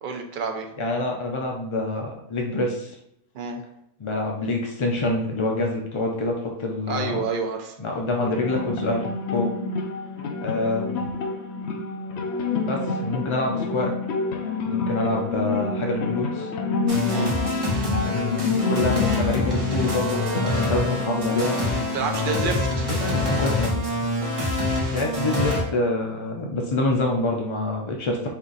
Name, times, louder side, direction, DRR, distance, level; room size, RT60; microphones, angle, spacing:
voice 1, 0.0-0.7 3.3-3.6 6.9-7.8 17.1-17.3 21.9-22.9, right 4 dB, 55° right, 4 dB, 0.7 m, -29 dB
voice 2, 0.8-3.0 4.0-7.2 7.8-9.0 9.3-9.5 10.4-11.1 12.6-13.9 14.6-16.5 18.0-21.6 22.9-23.7 24.9-28.3, left 2 dB, 50° left, 0 dB, 0.3 m, -26 dB
sound 1, 8.1-23.1, left 4 dB, 70° left, 0.8 m, -29 dB
sound 2, 16.9-25.6, left 2 dB, 30° right, 1.0 m, -25 dB
4.4 x 2.5 x 3.9 m, 0.78 s
omnidirectional pair, 1.3 m